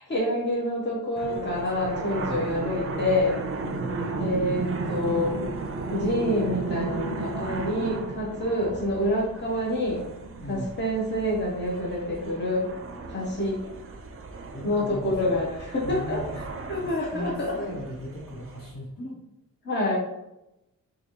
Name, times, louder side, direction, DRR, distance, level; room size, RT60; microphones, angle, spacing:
voice 1, 0.0-3.4 4.2-5.3 5.9-10.0 10.5-12.7 13.1-13.6 14.6-16.2 16.7-17.5 19.6-20.0, left 1 dB, 35° left, -4 dB, 0.8 m, -27 dB
sound 1, 1.1-18.7, right 3 dB, 45° right, 0.4 m, -34 dB
voice 2, 2.1-2.5 3.6-4.1 10.4-10.7 14.5-15.4 15.8-16.4 16.8-19.2, left 1 dB, 80° left, -4 dB, 1.2 m, -37 dB
3.9 x 2.4 x 3.0 m, 0.90 s
wide cardioid pair, 175°, 33 cm